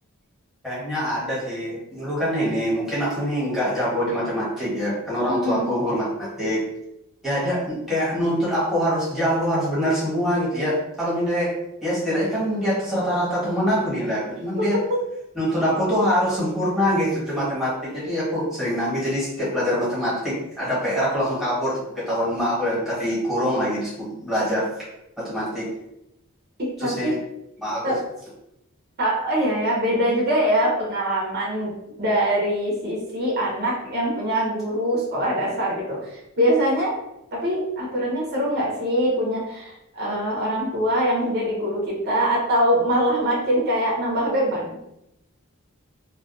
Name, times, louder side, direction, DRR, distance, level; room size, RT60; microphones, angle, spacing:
voice 1, 0.6-6.6 7.2-11.6 11.8-14.8 15.3-24.8 25.2-25.7 26.8-27.2 27.6-28.0, equal, ahead, -10 dB, 1.1 m, -24 dB
voice 2, 5.3-5.7 26.6-27.2 27.8-28.0 29.0-31.7 32.0-36.9 37.3-44.8, equal, 50° right, -4 dB, 0.6 m, -23 dB
2.3 x 2.2 x 2.5 m, 0.86 s
head